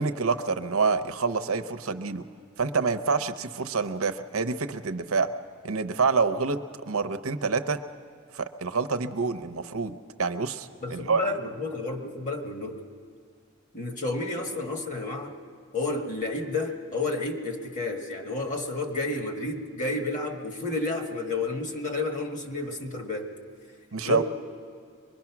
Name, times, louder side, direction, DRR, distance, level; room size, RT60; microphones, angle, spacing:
voice 1, 0.0-2.2 2.6-5.3 5.6-7.8 8.3-11.2 23.9-24.2, right 4 dB, 80° right, 8 dB, 0.8 m, -27 dB
voice 2, 10.8-12.8 13.7-15.3 15.7-23.3 24.0-24.2, left 2 dB, 35° left, 3 dB, 1.8 m, -31 dB
24.0 x 21.5 x 6.0 m, 2.2 s
head